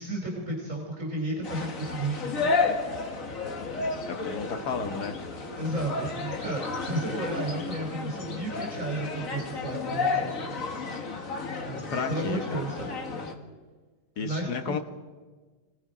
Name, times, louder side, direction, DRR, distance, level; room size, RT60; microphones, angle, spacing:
voice 1, 0.0-2.5 5.6-10.6 11.6-11.8 12.1-12.9 14.2-14.8, right 1 dB, 50° right, -1 dB, 3.6 m, -33 dB
sound 1, 1.4-13.3, left 4 dB, 50° left, 2.0 m, -32 dB
voice 2, 4.1-5.2 11.9-12.6 14.2-14.8, left 4 dB, 70° left, 6 dB, 1.8 m, -32 dB
29.0 x 18.0 x 5.0 m, 1.4 s
omnidirectional pair, 1.8 m